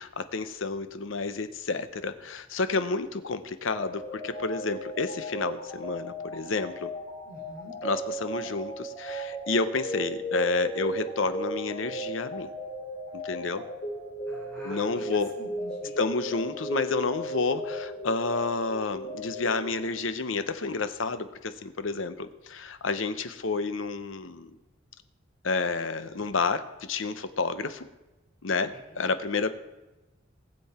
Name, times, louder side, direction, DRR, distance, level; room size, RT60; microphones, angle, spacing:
voice 1, 0.0-6.9 7.8-12.5 13.1-13.6 14.6-15.3 16.0-24.6 25.4-27.9 28.4-29.5, left 3 dB, 85° left, 11 dB, 0.9 m, -30 dB
sound 1, 3.7-20.3, equal, 45° left, 3.8 m, -36 dB
voice 2, 7.2-7.7 14.3-14.8 15.1-16.0 28.7-29.0, equal, 5° left, -8 dB, 5.5 m, -47 dB
19.5 x 7.8 x 4.4 m, 1.1 s
head